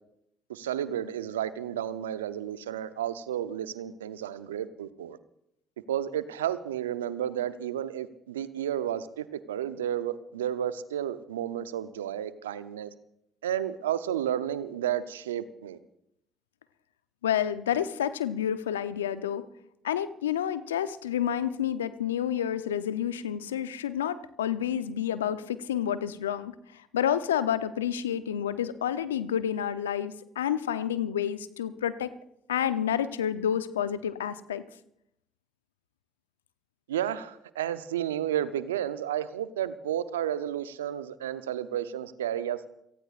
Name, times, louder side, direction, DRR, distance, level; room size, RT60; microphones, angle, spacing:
voice 1, 0.5-5.2 5.9-12.9 13.4-15.8 36.9-42.7, right 10 dB, 85° right, 14 dB, 0.7 m, -32 dB
voice 2, 17.2-19.4 19.8-32.1 32.5-34.6, left 9 dB, 85° left, 13 dB, 0.7 m, -29 dB
28.5 x 18.0 x 2.5 m, 0.75 s
hypercardioid pair, 50°, 0 cm